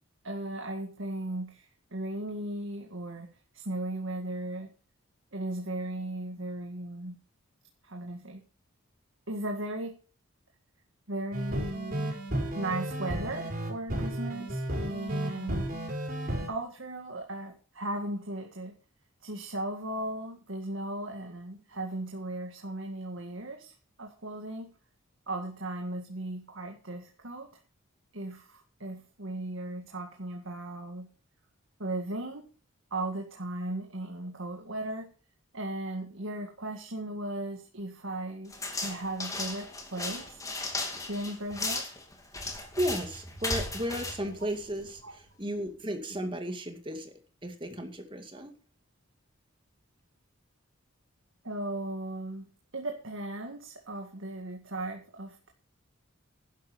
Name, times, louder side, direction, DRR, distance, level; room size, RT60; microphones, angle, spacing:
voice 1, 0.2-4.7 5.3-7.2 7.8-8.4 9.3-9.9 11.1-12.2 12.5-15.7 16.5-18.7 19.2-24.7 25.3-27.5 28.1-31.1 31.8-32.5 32.9-35.1 35.5-40.4 41.0-41.9 45.0-45.2 51.4-52.5 52.7-55.5, right 1 dB, 65° right, 3 dB, 1.9 m, -37 dB
sound 1, 11.3-16.5, right 1 dB, 45° right, 5.5 m, -33 dB
sound 2, 38.5-45.1, left 2 dB, 15° left, 2.4 m, -36 dB
voice 2, 42.8-47.1 47.4-48.5, equal, 25° right, 6 dB, 2.2 m, -34 dB
12.5 x 10.0 x 5.3 m, 0.37 s
head